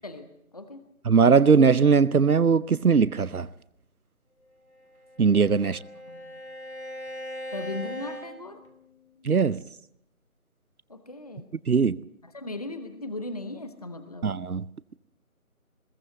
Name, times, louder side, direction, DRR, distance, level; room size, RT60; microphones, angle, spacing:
voice 1, 0.0-0.8 5.6-6.4 7.5-8.6 10.9-11.5 12.2-14.3, left 2 dB, 25° left, 1.0 m, -38 dB
voice 2, 1.1-3.5 5.2-5.8 9.2-9.6 11.7-12.0 14.2-14.6, right 5 dB, 80° right, 0.8 m, -20 dB
Bowed string instrument, 4.7-9.2, equal, 50° left, 3.1 m, -40 dB
21.0 x 17.0 x 7.9 m
figure-of-eight pair, 160°, 43 cm